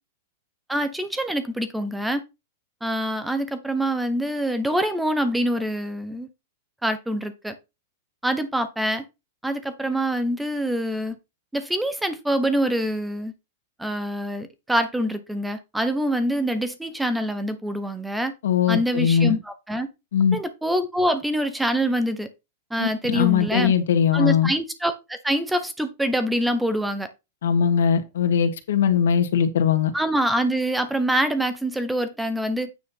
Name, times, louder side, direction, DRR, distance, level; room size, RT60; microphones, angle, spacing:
voice 1, 0.7-2.2 2.8-6.3 6.8-7.6 8.2-9.0 9.4-11.2 11.5-13.3 13.8-18.3 18.7-19.9 20.3-22.3 22.7-23.7 24.1-27.1 29.9-32.7, right 1 dB, 5° right, 0.9 m, -25 dB
voice 2, 18.4-19.4 20.1-20.4 22.8-24.5 27.4-29.9, left 7 dB, 80° left, 1.9 m, -20 dB
9.4 x 4.3 x 5.6 m
supercardioid pair, 175°, 0 cm